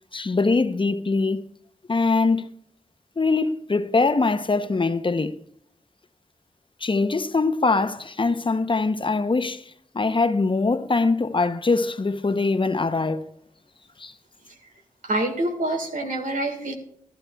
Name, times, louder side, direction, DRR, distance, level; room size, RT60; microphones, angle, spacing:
voice 1, 0.1-1.4 1.9-2.5 3.2-5.4 6.8-9.6 9.9-13.3 14.0-14.1, left 3 dB, 40° left, 0.7 m, -22 dB
voice 2, 15.0-16.8, right 1 dB, 80° right, 1.6 m, -26 dB
14.5 x 11.0 x 2.3 m
cardioid pair, 40°, 14 cm